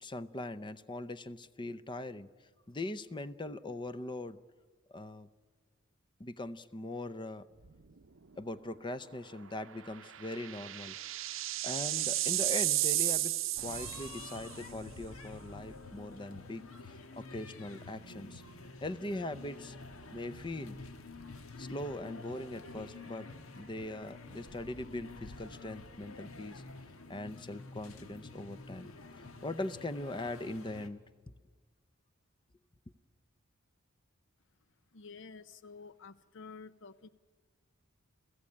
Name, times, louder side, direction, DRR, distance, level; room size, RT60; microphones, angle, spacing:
voice 1, 0.0-2.3 2.7-4.4 4.9-5.3 6.2-7.4 8.4-11.0 11.6-16.6 17.2-18.4 18.8-19.8 20.1-20.8 21.6-23.3 23.6-26.6 27.1-28.9 29.2-31.0, left 2 dB, 25° left, 14 dB, 0.6 m, -41 dB
sound 1, 7.6-8.0 8.3-8.4 9.9-14.5, right 16 dB, 65° right, 0.7 m, -33 dB
sound 2, 13.6-30.9, left 3 dB, 80° left, 1.6 m, -49 dB
voice 2, 34.9-37.1, left 4 dB, 60° left, 14 dB, 0.7 m, -50 dB
29.5 x 16.0 x 8.6 m, 1.5 s
head